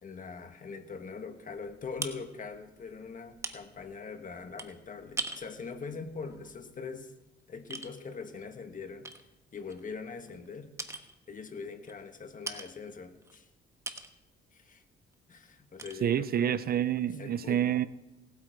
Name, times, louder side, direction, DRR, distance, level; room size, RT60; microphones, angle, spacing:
voice 1, 0.0-7.1 7.5-9.1 9.5-10.7 11.3-13.5 14.5-14.8 15.3-16.5 17.2-17.7, left 5 dB, 40° left, 7 dB, 1.5 m, -42 dB
sound 1, 1.5-7.4 7.7-7.9 8.4-8.5 9.0-10.5 10.8-11.2 11.9-12.0 12.5-12.7 13.1-14.2 14.6-14.9 15.1-15.2 15.8-16.0, right 2 dB, 15° right, 1.3 m, -42 dB
voice 2, 16.0-17.9, right 10 dB, 50° right, 16 dB, 0.5 m, -28 dB
18.0 x 8.5 x 4.6 m, 0.95 s
cardioid pair, 90°, 20 cm